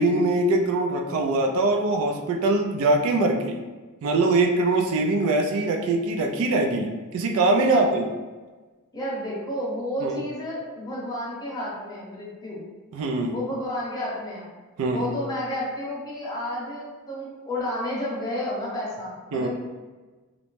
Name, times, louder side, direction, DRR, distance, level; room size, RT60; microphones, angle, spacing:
voice 1, 0.0-3.6 4.0-8.1 10.0-10.2 12.9-13.3 14.8-15.1 19.3-19.5, right 2 dB, 65° right, 2 dB, 0.3 m, -22 dB
voice 2, 8.9-12.6 13.3-14.4 14.9-19.5, left 1 dB, 20° left, -6 dB, 0.7 m, -31 dB
2.5 x 2.1 x 3.1 m, 1.3 s
head